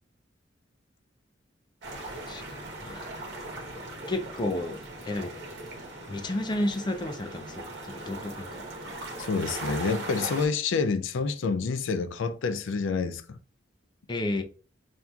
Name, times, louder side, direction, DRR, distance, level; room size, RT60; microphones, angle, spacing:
sound 1, 1.8-10.5, right 1 dB, 60° right, 1.1 m, -39 dB
voice 1, 2.3-3.4 4.1-4.8 5.0-5.3 6.1-8.6 14.1-14.4, left 1 dB, 25° left, 0.4 m, -32 dB
voice 2, 9.2-13.4, left 4 dB, 85° left, 0.4 m, -28 dB
5.7 x 2.6 x 2.3 m
head